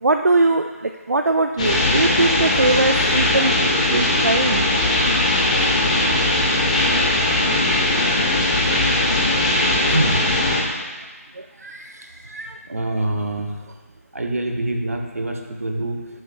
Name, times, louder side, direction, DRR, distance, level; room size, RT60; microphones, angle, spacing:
voice 1, 0.0-3.6 3.9-4.6 8.6-8.8 11.4-12.6, right 2 dB, 85° right, 6 dB, 0.3 m, -21 dB
sound 1, 1.6-10.6, left 1 dB, 25° left, 1.1 m, -19 dB
voice 2, 9.9-10.3 12.6-13.6 14.1-16.2, right 1 dB, 65° right, 3 dB, 0.9 m, -25 dB
7.7 x 7.3 x 2.4 m, 1.4 s
figure-of-eight pair, 155°, 8 cm